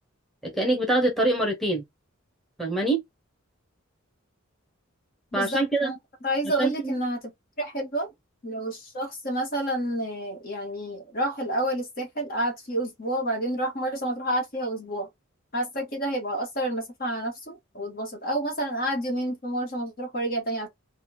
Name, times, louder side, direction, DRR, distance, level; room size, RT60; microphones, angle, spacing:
voice 1, 0.4-1.8 2.6-3.0 5.3-5.9 6.6-7.0, right 2 dB, ahead, 1.1 m, -24 dB
voice 2, 5.3-6.0 6.2-7.3 7.6-8.1 8.4-15.1 15.5-20.7, right 1 dB, 45° left, 1.7 m, -29 dB
4.2 x 2.4 x 3.9 m
head